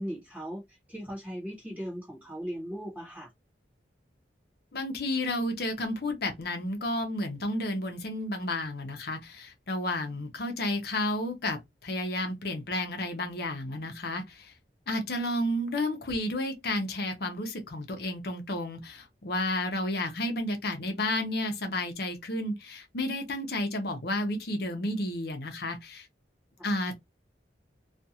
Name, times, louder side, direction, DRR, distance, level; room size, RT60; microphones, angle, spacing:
voice 1, 0.0-3.3 26.6-26.7, equal, 10° right, 0.9 m, -38 dB
voice 2, 4.7-14.5 14.9-26.1 26.6-26.9, left 1 dB, 60° left, 0.7 m, -31 dB
2.4 x 2.4 x 2.8 m
head